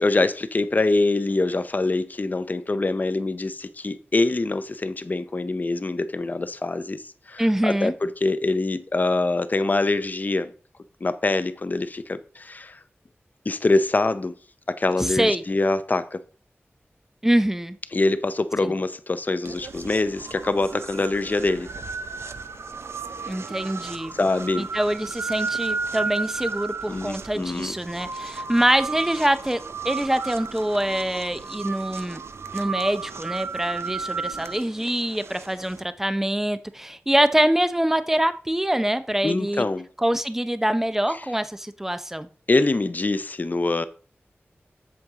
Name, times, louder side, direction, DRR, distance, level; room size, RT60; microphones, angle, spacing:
voice 1, 0.0-7.0 7.3-10.5 11.0-12.8 13.5-14.3 14.7-16.2 17.9-21.7 24.1-24.7 26.9-27.8 39.2-39.9 42.5-43.9, left 2 dB, 40° left, 0.6 m, -24 dB
voice 2, 7.4-7.9 15.0-15.4 17.2-17.8 18.6-18.7 23.3-24.1 24.6-32.2 32.5-39.6 40.0-42.3, right 1 dB, 10° right, 0.6 m, -24 dB
sound 1, 19.5-35.8, right 4 dB, 75° right, 0.5 m, -33 dB
7.8 x 7.1 x 3.6 m
wide cardioid pair, 90°, 4 cm